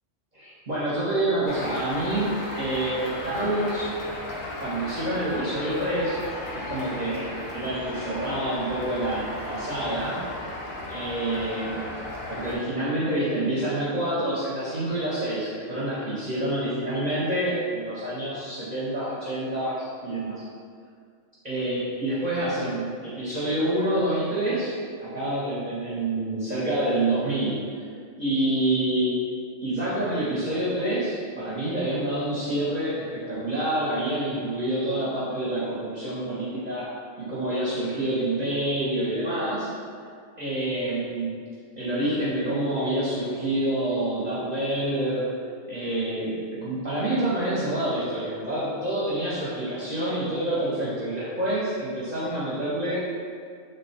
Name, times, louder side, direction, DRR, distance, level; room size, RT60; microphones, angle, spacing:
voice 1, 0.3-3.9 4.6-6.2 6.5-10.2 10.9-11.8 12.3-20.4 21.4-27.8 28.2-29.2 29.6-36.9 37.2-39.7 40.4-41.3 41.8-45.3 45.7-53.0, right 1 dB, 40° right, -9 dB, 0.7 m, -27 dB
sound 1, 1.5-12.6, left 1 dB, 50° left, 0.7 m, -35 dB
3.4 x 2.2 x 4.1 m, 2.1 s
omnidirectional pair, 1.3 m